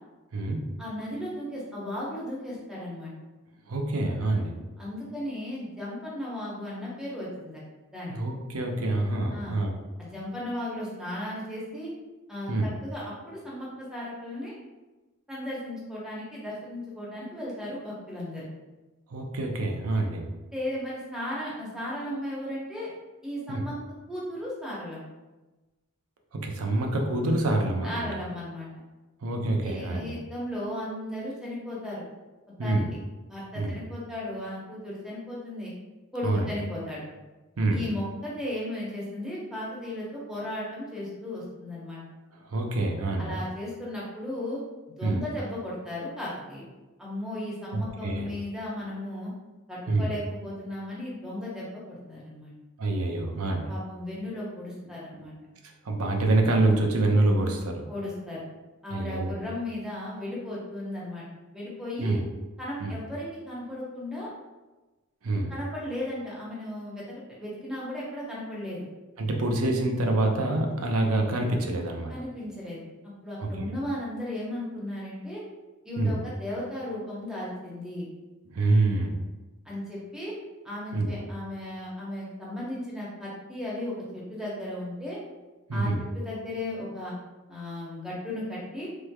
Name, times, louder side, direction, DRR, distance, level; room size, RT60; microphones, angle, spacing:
voice 1, 0.8-3.1 4.8-7.6 7.9-8.1 9.3-9.5 10.0-11.9 12.3-14.6 15.3-18.5 20.5-22.9 23.2-23.8 24.1-25.0 27.8-28.7 29.6-32.0 32.6-32.8 33.3-35.7 36.1-37.0 37.7-42.0 43.2-44.6 45.0-46.7 47.0-49.3 49.7-52.5 53.7-55.3 57.9-58.4 58.8-61.2 61.5-62.2 62.6-64.3 65.5-68.9 72.1-72.8 73.2-75.4 75.8-78.1 79.6-80.3 80.6-85.2 85.7-87.1 87.5-88.9, left 1 dB, 5° right, -7 dB, 0.8 m, -35 dB
voice 2, 3.7-4.5 8.1-9.7 12.5-12.7 19.1-20.2 23.5-23.6 26.3-28.1 29.2-30.1 32.6-32.9 33.5-33.8 36.2-36.5 37.6-37.8 42.5-43.3 45.0-45.2 47.7-48.3 49.9-50.1 52.8-53.6 55.2-55.3 55.9-57.9 58.9-59.3 62.0-62.2 62.8-63.0 65.2-65.5 69.2-72.1 73.4-73.7 76.0-76.2 78.5-79.1 80.9-81.2 85.7-86.0, right 2 dB, 80° right, 2 dB, 0.5 m, -26 dB
3.2 x 3.2 x 2.2 m, 1.1 s
head